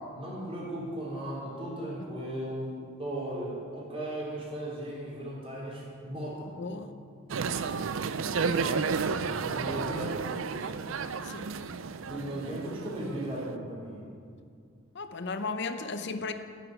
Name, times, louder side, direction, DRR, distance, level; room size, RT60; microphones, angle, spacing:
voice 1, 0.0-6.5 8.4-8.6 9.3-10.2 12.1-14.0, right 1 dB, 30° right, -6 dB, 4.0 m, -36 dB
voice 2, 6.6-6.9 11.2-11.5 14.9-16.3, left 4 dB, 55° left, 9 dB, 0.7 m, -35 dB
sound 1, 7.3-13.5, right 5 dB, 75° right, 0.5 m, -32 dB
10.0 x 7.7 x 9.5 m, 2.3 s
head